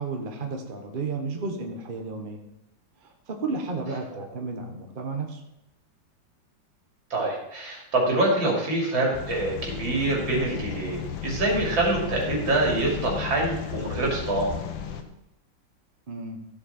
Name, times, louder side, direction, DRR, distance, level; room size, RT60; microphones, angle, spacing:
voice 1, 0.0-2.4 3.0-5.4 16.1-16.4, right 4 dB, 30° right, 3 dB, 1.2 m, -32 dB
voice 2, 7.1-14.6, right 2 dB, 85° right, -2 dB, 3.8 m, -25 dB
sound 1, 9.1-15.0, left 8 dB, 85° left, 1.8 m, -34 dB
14.5 x 7.6 x 4.4 m, 0.86 s
omnidirectional pair, 2.0 m